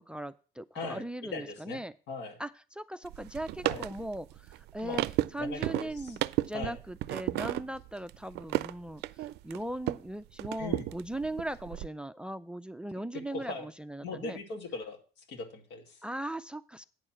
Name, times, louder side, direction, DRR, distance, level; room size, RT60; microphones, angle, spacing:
voice 1, 0.0-1.9 2.4-5.1 5.3-6.2 6.5-9.0 9.4-14.4 16.0-16.8, right 1 dB, 5° right, 15 dB, 0.3 m, -39 dB
voice 2, 0.7-1.8 2.1-2.4 3.6-3.8 4.8-5.1 5.4-6.2 6.5-6.8 10.6-10.9 13.3-13.7 14.0-15.0 15.3-16.0, left 3 dB, 85° left, 4 dB, 2.2 m, -39 dB
sound 1, 3.0-10.1 10.4-11.9, right 16 dB, 80° right, 0.4 m, -34 dB
9.0 x 4.7 x 7.3 m, 0.36 s
cardioid pair, 110°, 17 cm